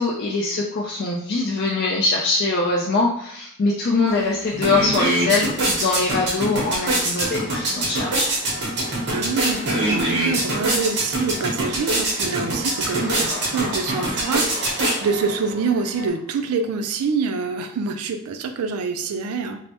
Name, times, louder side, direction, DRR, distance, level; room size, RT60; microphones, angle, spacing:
voice 1, 0.0-8.3, left 3 dB, 45° left, -2 dB, 0.4 m, -22 dB
sound 1, 4.1-4.2 4.5-15.4, right 1 dB, 50° right, 0.8 m, -24 dB
sound 2, 7.4-16.1, equal, 20° right, 0.8 m, -39 dB
voice 2, 9.0-19.7, right 4 dB, 70° right, 7 dB, 0.3 m, -26 dB
Laughter, 12.8-16.6, left 1 dB, 90° left, 1.0 m, -37 dB
3.2 x 2.0 x 2.8 m, 0.66 s
head